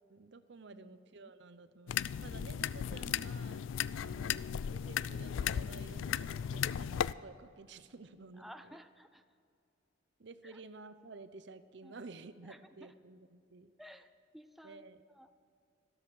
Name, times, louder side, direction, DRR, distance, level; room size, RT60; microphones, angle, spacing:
voice 1, 0.0-4.4 4.7-8.8 10.2-13.7 14.6-15.0, right 3 dB, 65° right, 12 dB, 0.7 m, -52 dB
sound 1, 1.9-7.1, left 9 dB, 80° left, 0.3 m, -36 dB
voice 2, 8.4-9.2 10.4-10.6 11.8-11.9 12.4-12.9 13.8-15.3, equal, ahead, 9 dB, 0.4 m, -55 dB
13.0 x 13.0 x 6.3 m, 2.5 s
head